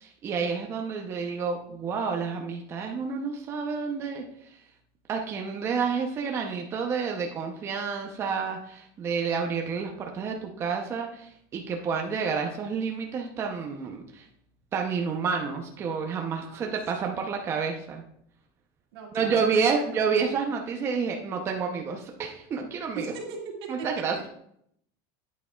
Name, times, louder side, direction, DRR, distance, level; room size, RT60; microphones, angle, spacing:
voice 1, 0.0-4.2 5.1-14.2 14.7-18.0 19.1-23.1 23.7-24.3, right 5 dB, 20° right, 2 dB, 0.6 m, -29 dB
voice 2, 18.9-19.4 19.7-19.8 22.9-23.7, right 5 dB, 90° right, 1 dB, 2.0 m, -38 dB
8.7 x 8.5 x 2.3 m, 0.69 s
cardioid pair, 175°, 13 cm